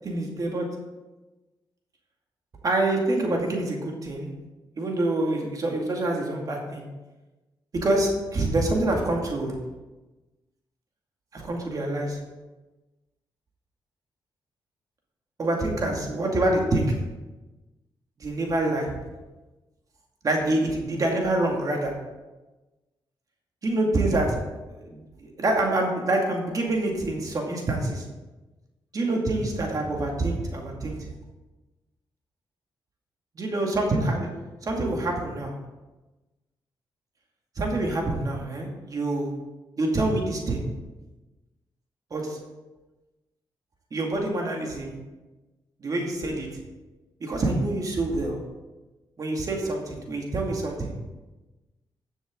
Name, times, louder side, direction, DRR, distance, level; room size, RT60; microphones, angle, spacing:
voice 1, 0.0-0.7 2.6-4.3 4.8-6.8 7.7-9.5 11.3-12.2 15.4-16.9 18.2-18.9 20.2-21.9 23.6-24.4 24.7-28.0 28.9-31.0 33.4-34.3 34.6-35.5 37.6-39.3 39.8-40.6 42.1-42.4 43.9-45.0 45.8-46.5 47.2-48.4 49.2-50.9, right 2 dB, 45° right, 1 dB, 2.2 m, -26 dB
13.5 x 7.1 x 3.8 m, 1.1 s
cardioid pair, 90°, 8 cm